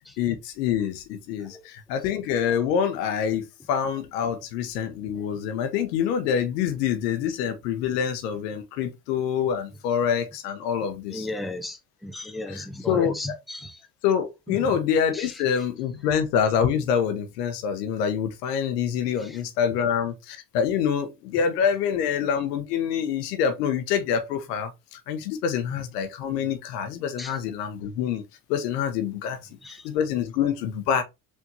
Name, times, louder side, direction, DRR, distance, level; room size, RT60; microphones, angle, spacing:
voice 1, 0.2-11.3 12.5-13.4 14.0-28.2 28.5-29.4 29.8-31.0, left 8 dB, 75° left, 0.9 m, -26 dB
voice 2, 11.1-13.8 14.5-14.7 15.1-15.4 19.2-19.4 27.2-27.4 29.6-29.9, left 2 dB, ahead, 0.7 m, -35 dB
4.5 x 3.5 x 2.7 m
hypercardioid pair, 55°, 48 cm